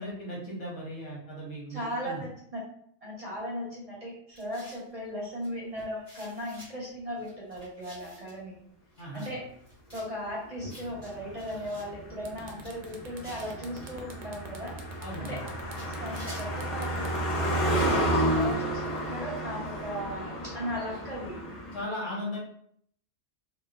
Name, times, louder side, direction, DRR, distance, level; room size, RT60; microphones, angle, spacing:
voice 1, 0.0-2.2 9.0-9.4 15.0-15.5 21.7-22.4, equal, 85° left, -6 dB, 1.4 m, -37 dB
voice 2, 1.7-2.6 3.0-8.6 9.1-9.4 9.9-14.8 15.2-15.5 15.9-21.4 22.1-22.2, equal, 40° right, -5 dB, 0.7 m, -37 dB
sound 1, 4.3-4.9 5.4-5.5 5.8-6.7 7.2-8.4 8.9-9.3 9.6-10.1 10.7-11.8 12.3-14.0 14.8-15.5 15.7-16.7 17.3-18.0, equal, 35° left, 1.5 m, -51 dB
Car passing by, 10.6-21.8, right 1 dB, 60° left, 0.3 m, -31 dB
sound 2, 11.8-11.9 12.2-18.3, right 5 dB, 75° right, 0.8 m, -47 dB
2.9 x 2.1 x 2.3 m, 0.66 s
omnidirectional pair, 1.2 m